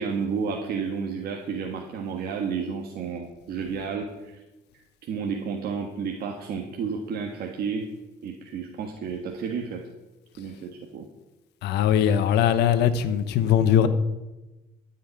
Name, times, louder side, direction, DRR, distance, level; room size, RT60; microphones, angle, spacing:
voice 1, 0.0-4.4 5.1-7.9 8.2-9.8 10.4-11.1, right 6 dB, 65° right, 1.5 m, -31 dB
voice 2, 11.6-13.9, left 9 dB, 80° left, 1.0 m, -21 dB
13.0 x 5.7 x 8.9 m
cardioid pair, 110°, 17 cm